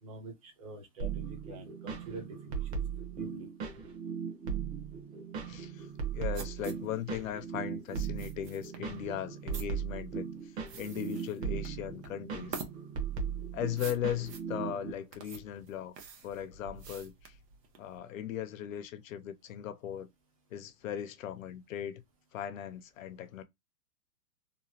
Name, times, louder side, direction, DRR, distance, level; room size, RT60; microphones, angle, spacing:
voice 1, 0.0-2.8 3.2-3.5, right 1 dB, 25° right, 0.5 m, -46 dB
sound 1, 1.0-14.9, right 7 dB, 45° right, 0.9 m, -38 dB
voice 2, 5.4-12.6 13.5-16.0 16.2-17.4 17.8-20.1 20.5-22.0 22.3-23.4, left 10 dB, 55° left, 0.5 m, -38 dB
sound 2, 5.8-18.0, right 6 dB, 80° right, 1.0 m, -48 dB
3.0 x 2.3 x 2.7 m
hypercardioid pair, 155°, 48 cm